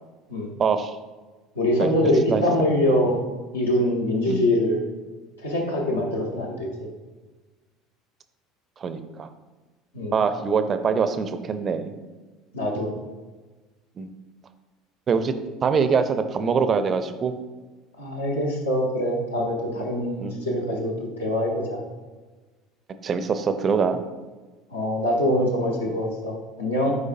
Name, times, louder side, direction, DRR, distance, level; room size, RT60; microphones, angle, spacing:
voice 1, 0.6-1.0 1.8-1.9 2.3-2.4 4.3-4.5 8.8-9.3 10.1-11.9 14.0-14.1 15.1-15.3 15.6-17.3 19.8-19.9 20.2-20.4 20.7-20.8 23.0-24.0, right 5 dB, 35° right, 10 dB, 0.5 m, -24 dB
voice 2, 1.5-3.2 3.5-4.8 5.4-6.7 9.9-10.2 12.5-12.9 18.0-21.8 24.7-26.9, left 1 dB, 75° left, -1 dB, 1.1 m, -24 dB
8.3 x 4.8 x 2.6 m, 1.3 s
figure-of-eight pair, 65°, 0 cm